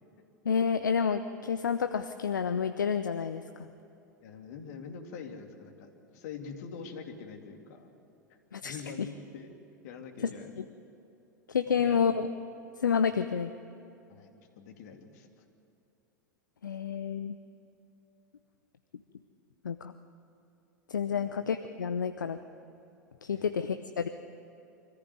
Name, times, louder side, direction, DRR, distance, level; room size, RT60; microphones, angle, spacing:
voice 1, 0.4-3.4 8.5-8.8 10.2-10.3 11.5-12.3 12.8-13.5 16.6-17.4 19.6-19.9 20.9-22.4 23.2-24.1, left 6 dB, 75° left, 10 dB, 0.7 m, -29 dB
voice 2, 4.2-7.9 8.6-9.5 9.8-10.5 11.8-12.1 14.1-14.3 14.6-15.3 21.1-21.3 23.3-23.5, left 5 dB, 55° left, 5 dB, 2.5 m, -44 dB
25.0 x 14.5 x 9.5 m, 2.8 s
figure-of-eight pair, 90°, 10 cm